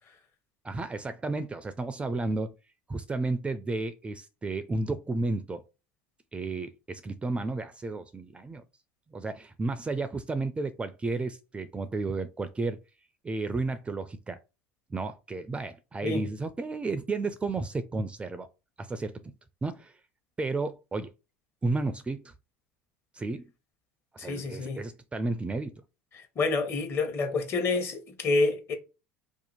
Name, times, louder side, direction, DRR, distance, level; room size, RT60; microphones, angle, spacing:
voice 1, 0.6-2.5 2.9-5.6 6.3-8.6 9.1-12.8 13.2-14.4 14.9-18.5 18.8-19.3 19.6-19.9 20.4-21.1 21.6-22.3 23.1-23.5 24.1-25.7, right 3 dB, 20° right, 0.4 m, -32 dB
voice 2, 24.2-24.8 26.1-28.7, left 3 dB, 40° left, 1.0 m, -28 dB
2.7 x 2.4 x 4.2 m
hypercardioid pair, 90°, 6 cm